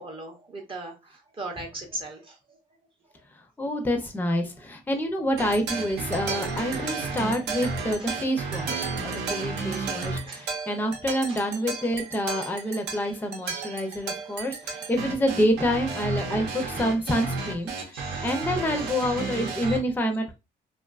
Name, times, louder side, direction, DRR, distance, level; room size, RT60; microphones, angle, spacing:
voice 1, 0.0-2.6 7.1-7.2 8.0-8.1 10.3-10.5 11.3-11.4 12.4-12.5 17.1-17.5 17.9-19.8, right 2 dB, 30° right, 1 dB, 0.6 m, -40 dB
voice 2, 3.3-18.0 18.2-20.3, equal, 10° left, 4 dB, 0.5 m, -27 dB
sound 1, 5.4-19.8, right 4 dB, 80° right, 0.7 m, -33 dB
2.6 x 2.3 x 2.3 m, 0.25 s
cardioid pair, 110°, 17 cm